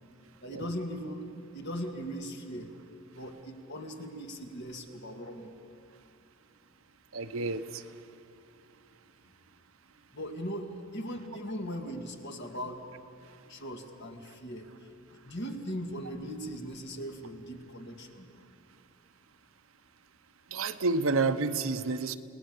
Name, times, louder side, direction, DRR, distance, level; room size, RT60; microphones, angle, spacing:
voice 1, 0.4-2.7 3.1-5.5 10.1-12.9 13.5-18.3, equal, 55° left, 3 dB, 2.1 m, -39 dB
voice 2, 7.1-7.8 20.5-22.1, right 3 dB, 75° right, 9 dB, 0.9 m, -29 dB
29.0 x 19.0 x 6.7 m, 2.6 s
head